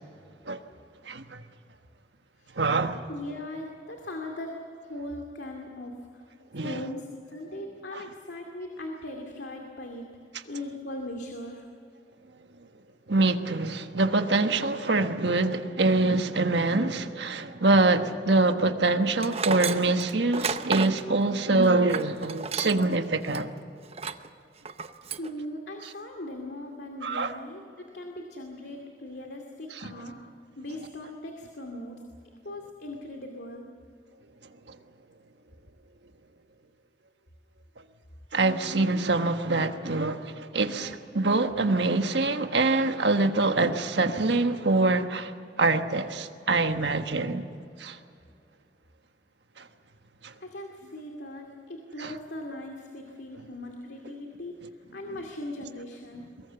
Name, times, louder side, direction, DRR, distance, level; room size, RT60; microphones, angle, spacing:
voice 1, 1.1-1.4 2.6-3.0 6.5-6.7 7.9-8.0 13.1-23.5 27.0-27.3 38.3-45.3 45.6-47.4 47.8-48.0, right 3 dB, 75° right, 1.4 m, -24 dB
voice 2, 3.1-6.2 6.6-10.1 10.5-11.7 25.1-30.2 30.6-32.1 32.4-33.7 50.4-56.3, left 1 dB, 70° left, 2.4 m, -39 dB
Tools, 19.2-23.0 23.3-23.4 23.9-24.3 24.7-25.3, right 5 dB, 35° right, 0.7 m, -32 dB
23.5 x 22.0 x 6.9 m
head